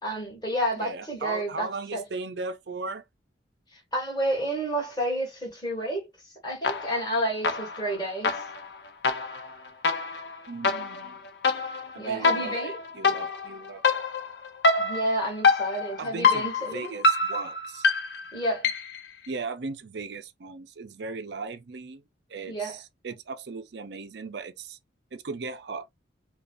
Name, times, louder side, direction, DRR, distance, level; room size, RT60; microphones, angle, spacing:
voice 1, 0.0-2.0 3.7-8.4 11.9-12.8 14.8-16.9 18.3-18.7 22.5-22.8, right 1 dB, 20° left, 1.9 m, -30 dB
voice 2, 0.8-3.0 10.5-11.2 11.9-14.0 16.0-17.9 19.3-22.0 22.3-24.8 25.1-26.0, right 4 dB, 65° right, 0.5 m, -37 dB
sound 1, 6.6-7.1 7.4-19.1, left 3 dB, 65° left, 0.7 m, -26 dB
5.2 x 2.4 x 2.5 m
head